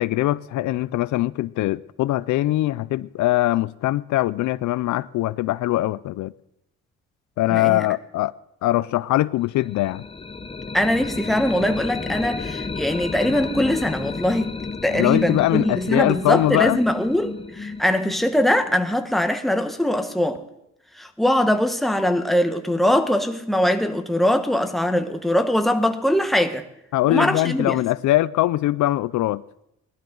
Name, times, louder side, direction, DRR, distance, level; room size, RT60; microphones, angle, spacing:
voice 1, 0.0-6.3 7.4-8.3 8.6-10.0 14.9-16.8 26.9-29.4, left 16 dB, 75° left, 0.4 m, -22 dB
voice 2, 7.5-7.9 10.7-14.5 14.8-20.4 21.0-26.6 27.1-27.8, left 1 dB, ahead, 1.2 m, -22 dB
sound 1, 9.6-19.4, left 4 dB, 20° left, 0.8 m, -33 dB
19.5 x 12.0 x 3.9 m
cardioid pair, 90°, 30 cm